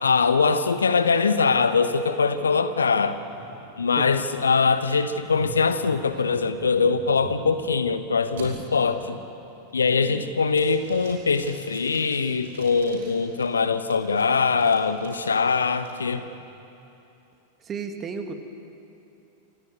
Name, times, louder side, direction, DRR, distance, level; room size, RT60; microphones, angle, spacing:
voice 1, 0.0-3.2 3.8-9.2 9.7-16.2, left 5 dB, 75° left, 11 dB, 1.2 m, -22 dB
sound 1, 1.5-7.9 8.4-8.5 9.0-9.3 9.7-10.2 10.5-13.4 13.9-15.9, right 4 dB, 60° right, 5.3 m, -45 dB
voice 2, 9.9-10.3 17.6-18.3, right 5 dB, 25° right, 6 dB, 2.3 m, -34 dB
27.0 x 17.5 x 9.4 m, 2.8 s
figure-of-eight pair, 90°, 0 cm